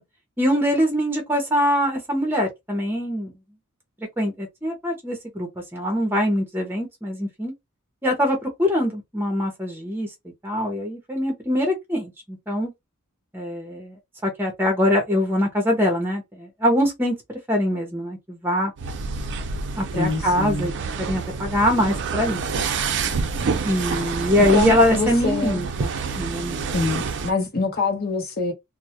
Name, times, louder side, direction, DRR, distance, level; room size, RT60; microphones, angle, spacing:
voice 1, 0.4-3.3 4.2-7.5 8.0-10.1 10.4-12.7 13.3-17.1 17.5-18.7 19.8-20.7 21.0-22.4 23.6-25.9 26.2-26.7, left 1 dB, 10° right, 0.6 m, -23 dB
sound 1, 18.8-27.3, right 5 dB, 55° right, 0.4 m, -28 dB
voice 2, 19.9-20.7 23.9-24.1 24.5-25.6 26.7-28.5, left 3 dB, 45° left, 0.8 m, -25 dB
2.2 x 2.0 x 2.8 m
head